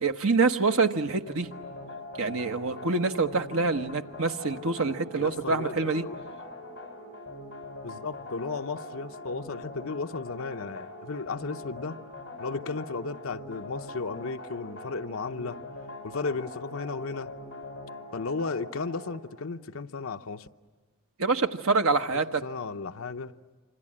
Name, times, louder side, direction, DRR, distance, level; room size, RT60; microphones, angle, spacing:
voice 1, 0.0-1.5 2.2-6.0 21.2-22.4, right 4 dB, 75° right, 1.1 m, -26 dB
sound 1, 1.3-19.2, left 2 dB, 50° left, 6.2 m, -42 dB
voice 2, 5.2-6.2 7.8-12.0 12.4-15.6 16.0-17.3 18.1-20.5 22.4-23.3, left 4 dB, 75° left, 0.8 m, -34 dB
26.5 x 26.0 x 8.7 m
head